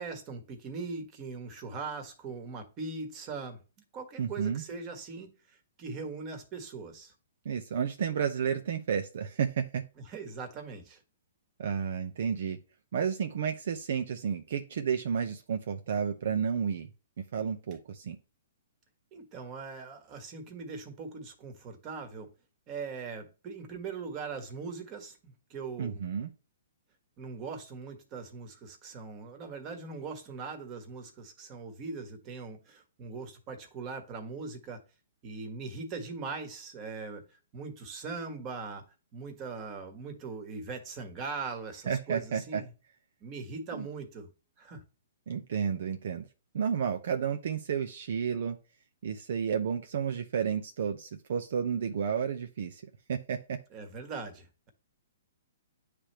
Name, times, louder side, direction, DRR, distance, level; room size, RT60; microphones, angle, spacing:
voice 1, 0.0-3.6 3.9-7.1 10.0-11.0 19.1-22.3 22.7-26.1 27.2-34.8 35.2-38.8 39.1-42.7 43.2-44.3 44.6-44.8 53.7-54.7, right 4 dB, 30° right, 1.6 m, -40 dB
voice 2, 4.2-4.6 7.4-9.8 11.6-12.6 12.9-16.9 17.3-18.2 25.8-26.3 41.9-42.6 43.8-43.9 45.3-46.3 46.5-48.6 49.0-52.8 53.1-53.6, right 7 dB, 65° right, 0.7 m, -31 dB
9.8 x 3.4 x 3.0 m
hypercardioid pair, 145°, 0 cm